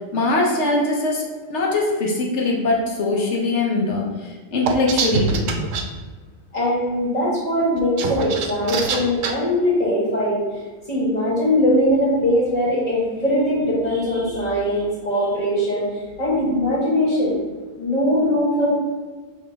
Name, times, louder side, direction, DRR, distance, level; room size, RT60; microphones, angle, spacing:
voice 1, 0.1-1.2 1.5-5.5, left 2 dB, 60° left, -1 dB, 1.1 m, -21 dB
sound 1, 4.7-5.8 7.8-9.3, right 5 dB, 75° right, 0.9 m, -24 dB
voice 2, 6.5-10.4 10.9-15.9 16.2-17.4 17.8-19.0, equal, 30° left, -6 dB, 1.7 m, -21 dB
5.2 x 3.0 x 3.4 m, 1.4 s
omnidirectional pair, 1.4 m